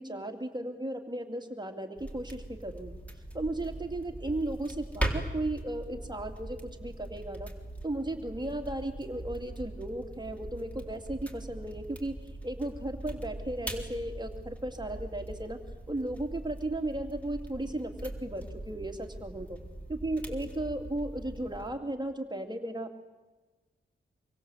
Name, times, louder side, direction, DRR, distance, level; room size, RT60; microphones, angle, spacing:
voice 1, 0.0-3.0 3.3-7.5 7.8-12.2 12.4-15.6 15.9-19.6 19.9-23.0, right 1 dB, 20° right, 5 dB, 2.5 m, -35 dB
sound 1, 2.0-21.7, right 1 dB, 5° left, 4.1 m, -41 dB
26.0 x 24.0 x 8.0 m, 1.2 s
cardioid pair, 80°, 20 cm